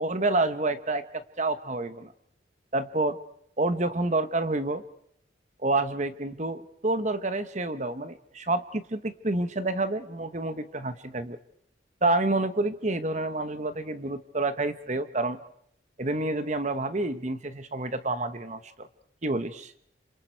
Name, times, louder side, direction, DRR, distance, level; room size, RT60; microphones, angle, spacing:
voice 1, 0.0-2.1 2.7-3.2 3.6-4.8 5.6-11.4 12.0-15.4 16.0-18.9 19.2-19.7, right 2 dB, 35° right, 11 dB, 1.1 m, -28 dB
27.0 x 26.5 x 4.6 m, 0.69 s
head